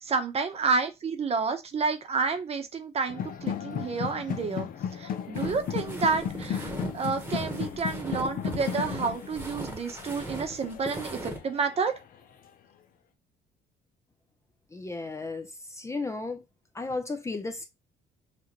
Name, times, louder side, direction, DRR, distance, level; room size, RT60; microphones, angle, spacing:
voice 1, 0.0-12.0, right 4 dB, 35° right, 0.9 m, -30 dB
sound 1, 3.1-12.0, left 8 dB, 55° left, 0.7 m, -35 dB
sound 2, 5.3-11.4, right 1 dB, 10° right, 1.1 m, -39 dB
voice 2, 14.7-16.4 16.7-17.6, left 3 dB, 15° left, 0.5 m, -34 dB
5.9 x 2.5 x 3.0 m
cardioid pair, 110°, 17 cm